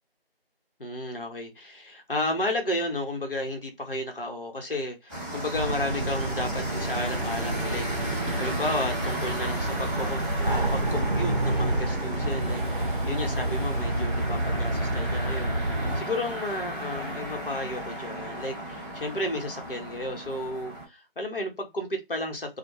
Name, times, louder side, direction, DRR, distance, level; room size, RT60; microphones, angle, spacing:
voice 1, 0.8-22.6, left 1 dB, 65° left, 1.0 m, -33 dB
sound 1, 5.1-20.9, equal, 20° left, 1.2 m, -35 dB
sound 2, 5.5-16.0, right 2 dB, 55° right, 0.6 m, -29 dB
2.4 x 2.1 x 2.9 m
figure-of-eight pair, 175°, 30 cm